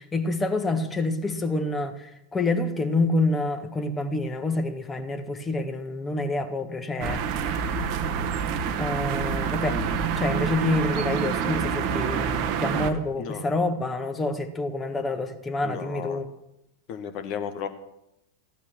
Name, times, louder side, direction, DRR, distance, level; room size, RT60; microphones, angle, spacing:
voice 1, 0.0-7.6 8.2-8.3 8.8-9.8 10.2-16.3, left 2 dB, 15° left, 7 dB, 1.7 m, -27 dB
sound 1, 7.0-12.9, right 7 dB, 40° right, 1.2 m, -27 dB
voice 2, 9.7-10.0 13.2-13.5 15.6-16.2 16.9-17.7, left 7 dB, 40° left, 8 dB, 1.4 m, -34 dB
15.0 x 11.5 x 6.3 m, 0.84 s
figure-of-eight pair, 90°, 0 cm